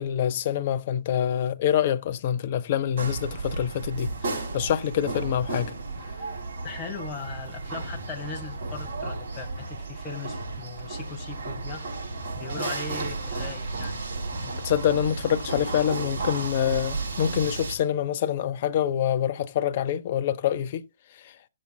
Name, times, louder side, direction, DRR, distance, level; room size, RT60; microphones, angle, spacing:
voice 1, 0.0-4.1 4.5-5.7 14.6-20.8, left 10 dB, 45° left, 0.8 m, -26 dB
sound 1, 3.0-17.8, right 3 dB, 45° right, 5.9 m, -33 dB
voice 2, 6.6-11.8 12.3-14.0, left 4 dB, 20° left, 1.5 m, -38 dB
16.0 x 7.5 x 2.3 m
figure-of-eight pair, 130°, 0 cm